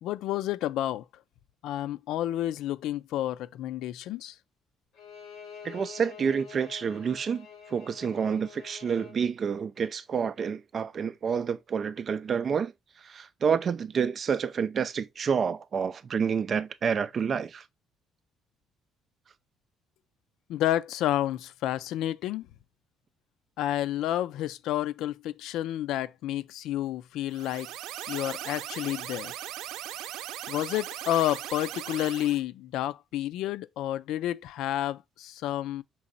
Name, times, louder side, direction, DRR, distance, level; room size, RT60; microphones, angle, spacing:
voice 1, 0.0-1.0 1.6-4.3 20.5-22.4 23.6-27.7 28.1-29.3 30.5-35.8, left 13 dB, 75° left, 0.4 m, -30 dB
Bowed string instrument, 5.0-9.2, left 7 dB, 55° left, 5.0 m, -47 dB
voice 2, 5.6-7.5 7.7-12.7 13.1-17.6, right 6 dB, 35° right, 0.5 m, -28 dB
sound 1, 27.3-32.4, right 12 dB, 90° right, 0.6 m, -38 dB
6.2 x 3.9 x 4.0 m
cardioid pair, 155°, 0 cm